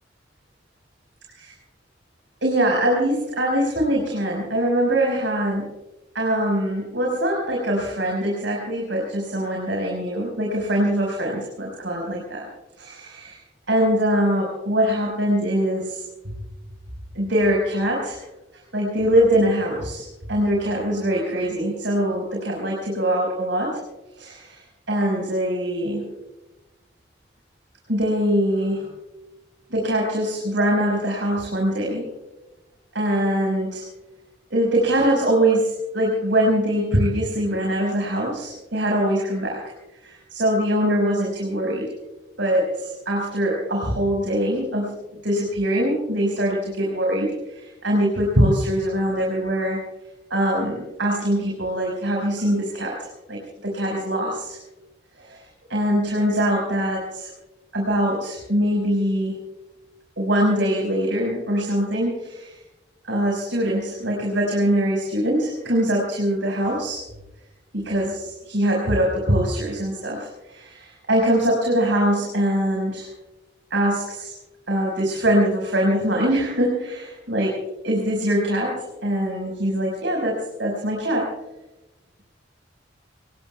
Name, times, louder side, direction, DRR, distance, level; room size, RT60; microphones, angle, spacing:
voice 1, 2.4-5.7 6.1-12.5 12.8-13.4 13.7-16.0 17.1-18.2 18.7-23.8 24.2-26.1 27.9-28.9 29.7-32.1 32.9-33.8 34.5-39.6 40.0-41.9 42.4-45.0 45.2-49.8 50.3-54.6 55.2-57.3 57.7-59.3 60.2-62.6 63.0-67.0 67.7-73.1 73.7-74.3 74.7-77.5 77.8-81.3, right 1 dB, 80° right, -2 dB, 5.2 m, -23 dB
27.0 x 21.0 x 2.3 m, 1.0 s
head